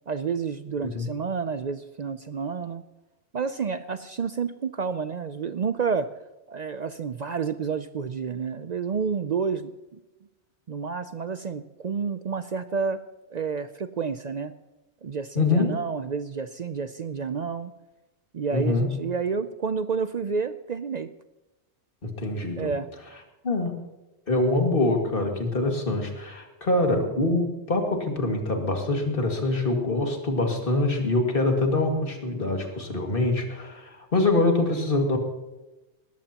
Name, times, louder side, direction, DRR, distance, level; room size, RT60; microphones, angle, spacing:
voice 1, 0.1-2.8 3.3-6.1 6.5-10.0 10.7-13.0 13.3-14.5 15.0-17.7 18.3-21.1 22.5-22.9, right 5 dB, 55° right, 11 dB, 0.5 m, -30 dB
voice 2, 15.4-15.7 18.5-19.0 22.2-22.7 23.4-23.8 24.3-35.2, left 2 dB, 50° left, 2 dB, 2.3 m, -24 dB
20.0 x 15.0 x 2.9 m, 1.0 s
omnidirectional pair, 1.2 m